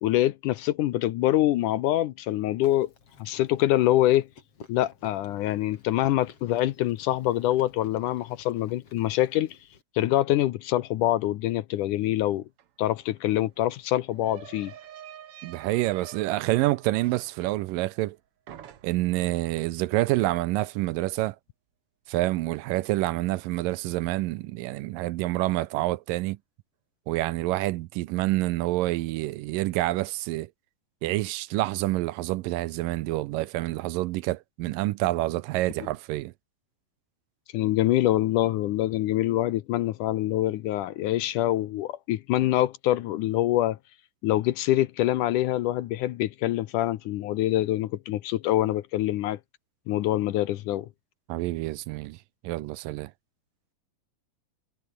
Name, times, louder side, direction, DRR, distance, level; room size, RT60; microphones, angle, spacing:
voice 1, 0.0-2.9 3.2-4.3 4.7-9.6 10.0-12.4 12.8-14.7 37.5-43.8 44.2-49.4 49.9-50.9, left 14 dB, 75° left, 2.1 m, -25 dB
Chewing mastication, 2.6-9.8, left 5 dB, 40° left, 3.9 m, -53 dB
sound 1, 12.6-12.7 12.9-18.2 18.5-19.2, right 10 dB, 55° right, 1.7 m, -48 dB
voice 2, 15.4-18.2 18.8-21.4 22.1-26.4 27.1-30.5 31.0-36.3 51.3-52.2 52.4-53.1, right 18 dB, 80° right, 2.2 m, -27 dB
omnidirectional pair, 4.1 m